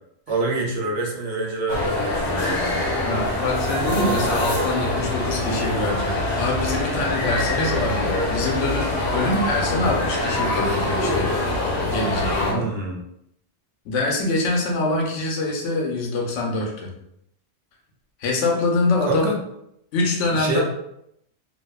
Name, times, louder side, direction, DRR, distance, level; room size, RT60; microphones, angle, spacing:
voice 1, 0.3-2.8 12.5-13.0 19.0-19.4 20.3-20.6, right 2 dB, 75° right, -1 dB, 0.9 m, -26 dB
sound 1, 1.7-12.5, left 2 dB, 55° left, 0.7 m, -24 dB
voice 2, 3.0-11.3 11.8-12.7 13.9-16.9 18.2-19.3 19.9-20.6, left 2 dB, 85° left, 0 dB, 0.9 m, -24 dB
2.6 x 2.2 x 2.2 m, 0.78 s
omnidirectional pair, 1.2 m